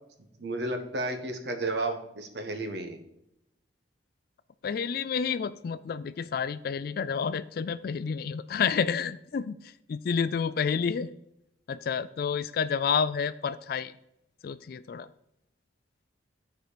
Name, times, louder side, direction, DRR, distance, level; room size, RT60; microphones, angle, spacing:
voice 1, 0.4-3.0, right 2 dB, 65° right, 6 dB, 1.2 m, -32 dB
voice 2, 4.6-11.1 11.7-13.9 14.4-15.1, left 6 dB, 55° left, 14 dB, 0.3 m, -29 dB
12.0 x 4.6 x 5.0 m, 0.81 s
head